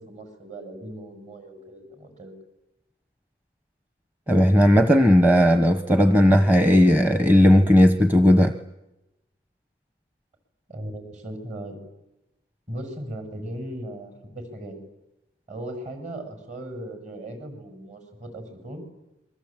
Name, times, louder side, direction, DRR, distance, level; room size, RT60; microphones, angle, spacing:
voice 1, 0.0-2.3 10.7-11.8 12.7-14.8 15.5-18.8, right 1 dB, 40° right, 6 dB, 7.2 m, -37 dB
voice 2, 4.3-8.5, left 1 dB, 10° right, 8 dB, 1.1 m, -16 dB
27.0 x 24.0 x 9.1 m, 0.92 s
head